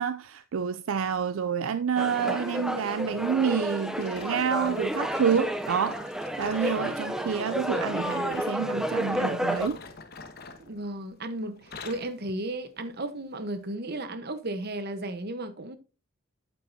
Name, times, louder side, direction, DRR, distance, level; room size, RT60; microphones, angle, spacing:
voice 1, 0.0-6.1 6.4-9.8, right 7 dB, 70° right, 0.4 m, -28 dB
sound 1, 2.0-9.7, equal, 5° right, 0.6 m, -31 dB
sound 2, 3.9-8.6 9.4-11.2 11.5-12.2 12.8-13.0 13.6-13.7, left 4 dB, 45° left, 1.2 m, -46 dB
voice 2, 10.6-15.8, right 1 dB, 50° right, 1.0 m, -34 dB
9.1 x 8.4 x 2.7 m
head